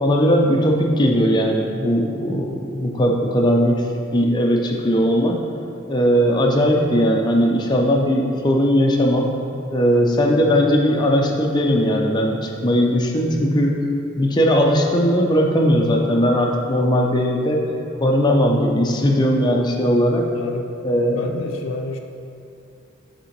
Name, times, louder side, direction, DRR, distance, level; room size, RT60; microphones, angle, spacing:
voice 1, 0.0-3.8 4.1-5.4 5.9-9.3 9.7-13.8 14.2-17.6 18.0-20.3 20.8-21.2, equal, 20° left, 0 dB, 0.6 m, -18 dB
voice 2, 20.3-20.7 21.2-22.0, left 3 dB, 70° left, 2 dB, 0.5 m, -29 dB
6.7 x 3.7 x 4.5 m, 2.6 s
head